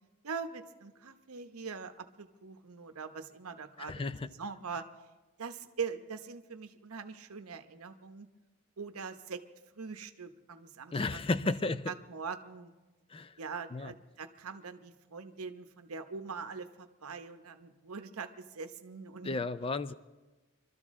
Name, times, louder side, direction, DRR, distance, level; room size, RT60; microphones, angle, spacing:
voice 1, 0.2-4.8 5.4-8.3 8.8-9.4 9.7-11.2 11.4-12.7 13.4-19.4, right 5 dB, 80° right, 8 dB, 0.9 m, -42 dB
voice 2, 3.8-4.3 10.9-11.8 13.1-13.3 13.7-13.9 19.2-19.9, left 3 dB, 25° left, 14 dB, 0.4 m, -33 dB
25.0 x 13.0 x 3.6 m, 1.2 s
head